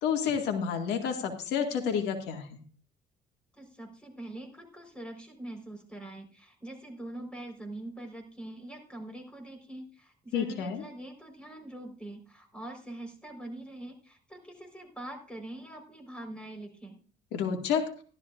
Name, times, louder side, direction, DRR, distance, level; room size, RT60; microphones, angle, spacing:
voice 1, 0.0-2.6 10.3-10.8 17.3-17.9, left 7 dB, 85° left, 4 dB, 2.1 m, -30 dB
voice 2, 3.5-17.0, right 1 dB, 5° left, 3 dB, 4.4 m, -44 dB
15.0 x 12.5 x 2.5 m, 0.42 s
cardioid pair, 110°, 17 cm